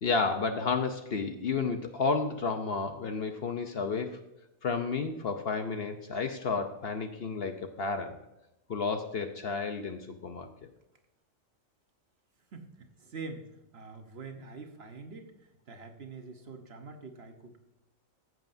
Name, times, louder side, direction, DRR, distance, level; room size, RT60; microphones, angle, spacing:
voice 1, 0.0-4.2 4.6-8.2 8.7-10.5, left 4 dB, 55° left, 6 dB, 0.8 m, -31 dB
voice 2, 12.5-13.5 13.7-17.6, right 4 dB, 50° right, 5 dB, 1.2 m, -45 dB
14.0 x 7.6 x 2.6 m, 0.92 s
omnidirectional pair, 1.4 m